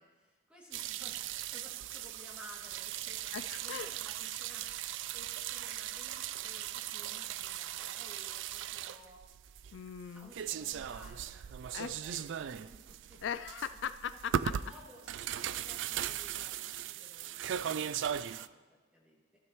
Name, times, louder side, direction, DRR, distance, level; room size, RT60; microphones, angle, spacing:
voice 1, 0.0-3.2 3.6-4.7 5.1-9.6 10.0-13.2 14.5-19.2, left 1 dB, 5° right, -4 dB, 2.4 m, -56 dB
sound 1, 0.7-18.5, right 10 dB, 65° right, 0.3 m, -38 dB
voice 2, 3.3-3.9 9.7-10.3 11.7-11.9 13.2-14.5, left 8 dB, 60° left, 12 dB, 0.3 m, -39 dB
15.5 x 12.5 x 3.1 m, 1.2 s
head